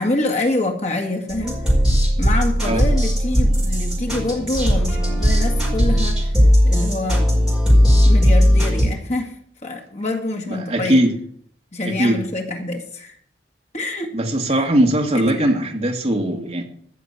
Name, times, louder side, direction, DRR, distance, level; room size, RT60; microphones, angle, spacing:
voice 1, 0.0-1.6 2.2-6.3 6.6-7.3 7.7-7.8 8.0-9.4 9.6-11.0 11.7-13.2 13.7-14.1 15.1-15.5, left 2 dB, 40° left, 1.8 m, -26 dB
sound 1, 1.3-8.9, equal, 5° right, 5.2 m, -17 dB
voice 2, 10.5-11.1 11.8-12.2 14.1-16.7, right 1 dB, 35° right, 1.8 m, -20 dB
14.0 x 6.6 x 8.2 m
head